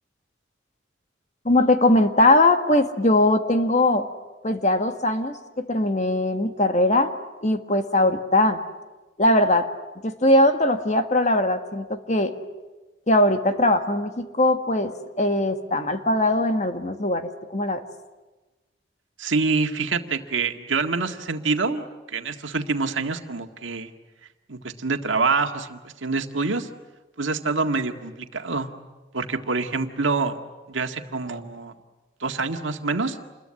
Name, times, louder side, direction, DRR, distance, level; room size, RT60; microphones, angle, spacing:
voice 1, 1.4-4.1 4.4-7.1 7.4-8.6 9.2-9.7 10.0-12.3 13.1-17.8, left 1 dB, 35° left, 8 dB, 1.6 m, -20 dB
voice 2, 19.2-23.9 24.5-26.7 27.2-28.7 29.1-30.4 30.7-31.7 32.2-33.2, right 4 dB, 90° right, 6 dB, 1.9 m, -26 dB
28.0 x 21.5 x 9.8 m, 1.2 s
head